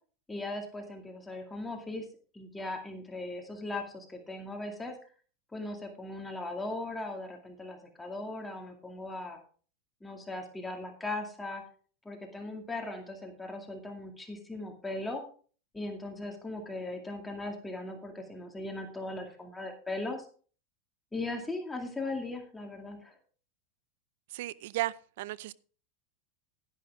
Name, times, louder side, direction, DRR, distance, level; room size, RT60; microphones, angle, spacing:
voice 1, 0.3-2.1 2.3-5.0 5.5-9.4 10.0-11.6 12.0-15.2 15.7-20.3 21.1-23.2, left 2 dB, 10° left, 3 dB, 2.3 m, -38 dB
voice 2, 24.3-25.5, right 16 dB, 70° right, 21 dB, 0.5 m, -35 dB
11.5 x 10.5 x 3.6 m, 0.41 s
supercardioid pair, 125°, 0 cm